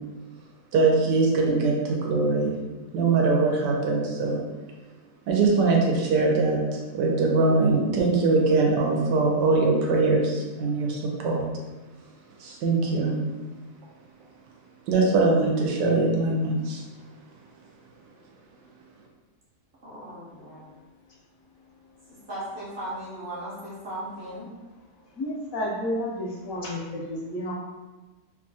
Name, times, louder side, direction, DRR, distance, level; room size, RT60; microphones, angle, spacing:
voice 1, 0.7-2.6 2.9-4.4 5.3-11.4 12.4-13.2 14.9-16.8, right 3 dB, 90° right, -1 dB, 1.3 m, -22 dB
voice 2, 19.8-20.6 22.3-24.5, right 1 dB, 45° right, -8 dB, 0.7 m, -37 dB
voice 3, 25.2-27.5, left 1 dB, 70° left, -3 dB, 0.9 m, -31 dB
3.0 x 2.3 x 2.6 m, 1.2 s
omnidirectional pair, 1.8 m